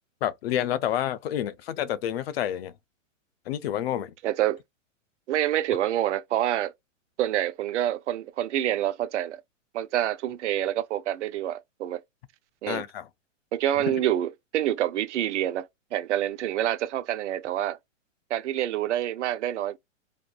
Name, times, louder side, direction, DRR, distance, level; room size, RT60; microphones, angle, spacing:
voice 1, 0.2-2.7 3.5-4.1 12.7-13.1 13.9-14.0, left 11 dB, 50° left, 0.5 m, -29 dB
voice 2, 4.2-4.6 5.3-6.7 7.2-9.4 9.7-12.0 12.6-12.8 13.5-17.8 18.3-19.8, right 12 dB, 65° right, 0.6 m, -27 dB
2.6 x 2.4 x 2.3 m
hypercardioid pair, 145°, 39 cm